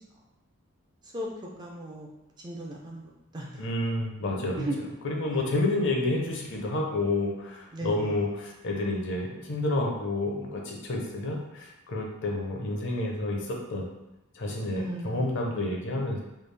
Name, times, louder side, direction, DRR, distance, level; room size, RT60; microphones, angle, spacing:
voice 1, 1.6-2.1 2.4-3.7 4.6-4.8 5.2-5.8 7.7-8.2 14.7-16.0, right 1 dB, 20° right, -2 dB, 0.3 m, -38 dB
voice 2, 3.6-4.7 5.0-13.9 14.3-16.2, left 2 dB, 55° left, 0 dB, 0.6 m, -29 dB
3.3 x 2.3 x 3.3 m, 0.95 s
head